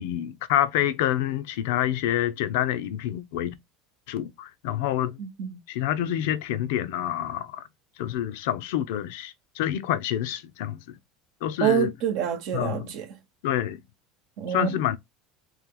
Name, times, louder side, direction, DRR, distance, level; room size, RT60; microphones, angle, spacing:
voice 1, 0.0-3.5 4.1-5.2 5.7-7.7 8.0-11.0 11.4-11.9 12.5-12.9 13.4-13.8 14.5-15.0, left 11 dB, 80° left, 0.5 m, -27 dB
voice 2, 5.2-5.6 11.6-13.0 14.4-14.7, right 9 dB, 65° right, 1.0 m, -26 dB
3.3 x 3.1 x 3.7 m
supercardioid pair, 120°, 0 cm